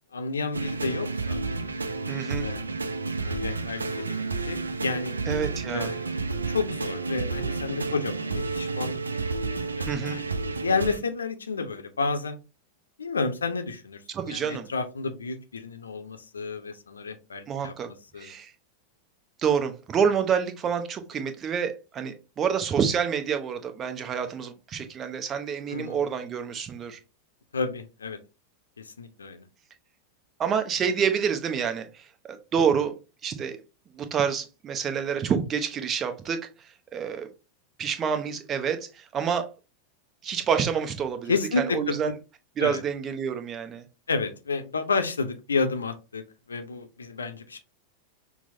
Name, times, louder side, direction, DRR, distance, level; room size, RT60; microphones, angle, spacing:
voice 1, 0.1-1.4 2.4-2.6 3.2-4.2 4.4-5.2 5.7-9.0 9.4-12.4 13.0-14.0 14.3-17.7 18.1-18.3 25.7-26.1 27.5-28.2 28.8-29.4 41.3-42.1 42.6-42.8 44.1-46.2 46.5-47.6, left 4 dB, 75° left, 0.6 m, -31 dB
sound 1, 0.5-11.0, right 3 dB, 75° right, 0.3 m, -31 dB
voice 2, 2.1-2.5 5.3-5.9 9.8-10.2 14.1-14.7 17.5-17.9 18.2-18.5 19.4-27.0 30.4-33.6 34.0-36.4 36.9-37.3 37.8-39.5 40.2-42.1 42.6-43.8, right 7 dB, 25° right, 0.7 m, -28 dB
5.9 x 2.0 x 2.6 m
figure-of-eight pair, 90°, 0 cm